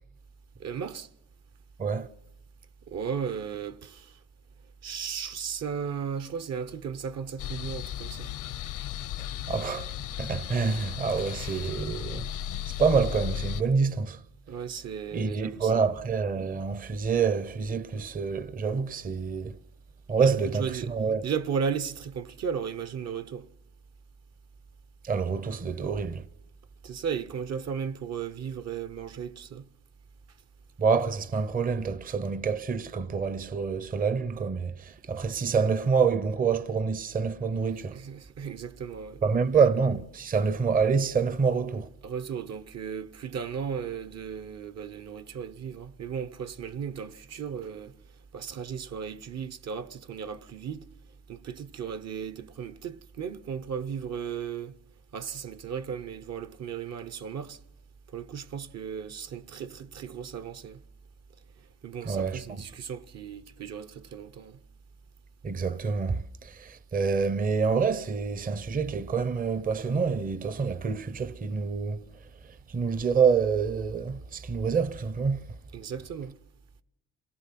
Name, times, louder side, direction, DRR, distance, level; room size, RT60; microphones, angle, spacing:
voice 1, 0.6-1.1 2.9-4.1 4.8-8.3 11.4-11.5 14.5-15.8 20.2-20.9 21.2-23.4 26.8-29.6 37.8-39.2 42.0-47.9 48.3-50.8 51.3-54.7 55.1-57.6 58.1-60.8 61.8-64.6 75.7-76.3, right 7 dB, 60° right, 1.0 m, -35 dB
sound 1, 7.4-13.6, left 10 dB, 80° left, 0.9 m, -35 dB
voice 2, 9.5-12.3 12.7-14.2 15.1-19.6 20.1-21.3 25.0-26.3 30.8-38.0 39.2-41.9 62.0-62.6 65.4-72.0 72.4-75.4, right 5 dB, 30° right, 0.7 m, -27 dB
27.0 x 17.5 x 6.0 m
cardioid pair, 90°, 30 cm